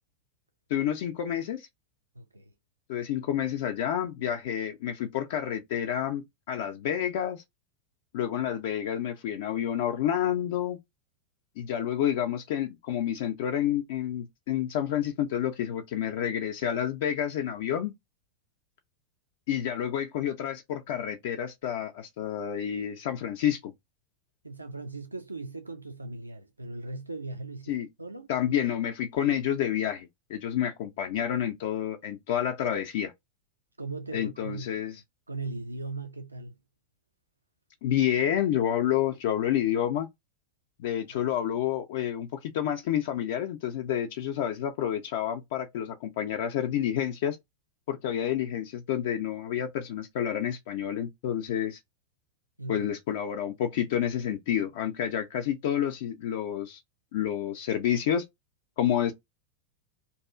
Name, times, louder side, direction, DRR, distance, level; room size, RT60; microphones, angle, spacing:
voice 1, 0.7-1.7 2.9-7.4 8.1-10.8 11.6-17.9 19.5-23.7 27.7-27.9 28.3-33.1 34.1-34.9 37.8-40.1 40.8-47.4 47.9-51.8 52.7-56.8 57.1-58.2 58.8-59.1, left 10 dB, 50° left, 0.3 m, -29 dB
voice 2, 2.1-2.5 24.4-28.3 33.8-34.8 35.3-36.6 52.6-52.9, right 3 dB, 80° right, 0.3 m, -38 dB
2.6 x 2.3 x 2.4 m
figure-of-eight pair, 90°, 0 cm